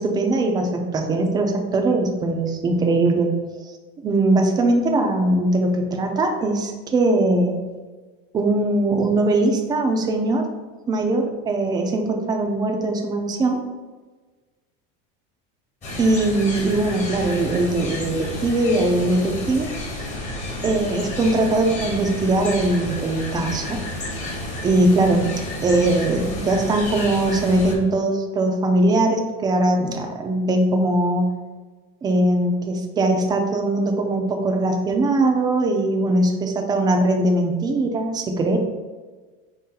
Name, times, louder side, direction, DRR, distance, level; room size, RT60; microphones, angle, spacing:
voice 1, 0.0-3.3 4.0-7.6 8.3-10.5 10.9-13.6 16.0-19.7 20.6-23.8 24.6-25.3 25.6-31.3 32.0-38.6, right 2 dB, 15° right, 3 dB, 0.4 m, -21 dB
sound 1, 15.8-27.8, left 1 dB, 25° left, 0.9 m, -31 dB
4.2 x 2.8 x 3.7 m, 1.3 s
supercardioid pair, 145°, 29 cm